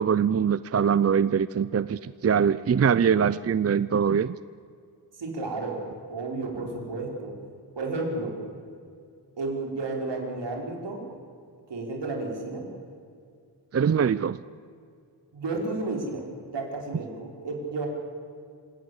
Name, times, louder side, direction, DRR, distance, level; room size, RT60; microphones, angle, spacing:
voice 1, 0.0-4.4 13.7-14.4, right 7 dB, 35° right, 16 dB, 0.5 m, -23 dB
voice 2, 5.2-5.8 6.1-7.3 7.8-8.3 9.4-11.1 11.7-12.6 15.3-17.9, right 3 dB, 75° right, 0 dB, 5.5 m, -32 dB
27.0 x 17.5 x 8.2 m, 2.3 s
wide cardioid pair, 110°, 43 cm